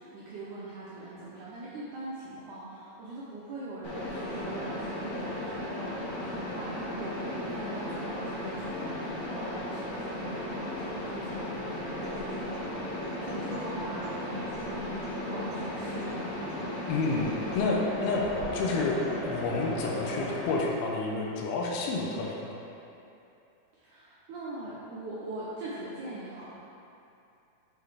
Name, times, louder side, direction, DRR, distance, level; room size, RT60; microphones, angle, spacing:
voice 1, 0.0-12.6 13.2-16.4 23.7-26.5, right 2 dB, 80° right, -8 dB, 1.8 m, -42 dB
Mechanisms, 3.8-20.5, left 1 dB, 60° left, 1.8 m, -35 dB
Acoustic guitar, 11.3-19.2, left 2 dB, 60° right, 1.2 m, -46 dB
voice 2, 16.9-18.2 18.5-22.6, left 3 dB, 85° left, -1 dB, 2.6 m, -30 dB
7.7 x 4.7 x 3.3 m, 2.7 s
omnidirectional pair, 4.4 m